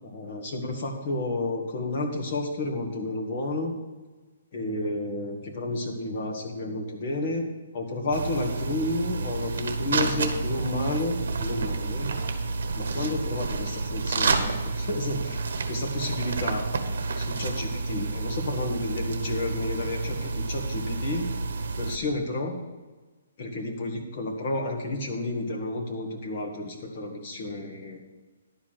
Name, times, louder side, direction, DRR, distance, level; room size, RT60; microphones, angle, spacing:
voice 1, 0.0-3.7 4.5-7.4 7.7-12.1 12.8-15.4 15.7-16.6 17.2-21.3 21.8-22.5 23.4-28.0, left 2 dB, 35° left, -1 dB, 1.9 m, -31 dB
sound 1, 8.1-22.0, right 3 dB, 70° right, 1.1 m, -29 dB
11.0 x 5.0 x 7.6 m, 1.2 s
hypercardioid pair, 170°, 0 cm